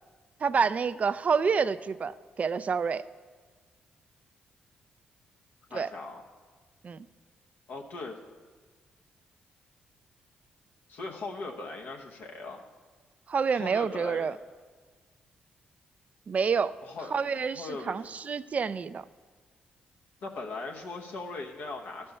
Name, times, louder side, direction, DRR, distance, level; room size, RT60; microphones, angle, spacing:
voice 1, 0.4-3.0 5.7-5.9 6.8-7.1 13.3-14.4 16.3-16.7 17.1-19.0, right 5 dB, 45° right, 15 dB, 0.3 m, -28 dB
voice 2, 5.7-6.2 7.7-8.2 10.9-12.7 13.5-14.3 16.8-17.1 17.5-18.1 20.2-22.1, left 3 dB, 75° left, 1 dB, 0.9 m, -39 dB
12.0 x 4.4 x 6.5 m, 1.4 s
cardioid pair, 70°, 3 cm